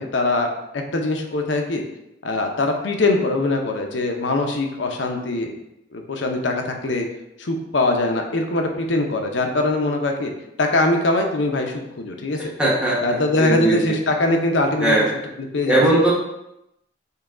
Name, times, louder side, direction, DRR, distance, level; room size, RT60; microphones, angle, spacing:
voice 1, 0.0-1.8 2.2-5.5 5.9-7.1 7.4-10.3 10.6-12.4 13.0-15.1 15.5-15.8, left 2 dB, 90° left, 3 dB, 0.7 m, -22 dB
voice 2, 12.6-13.9 14.8-15.1 15.7-16.1, right 2 dB, 5° right, -6 dB, 0.9 m, -19 dB
5.5 x 2.3 x 3.7 m, 0.86 s
head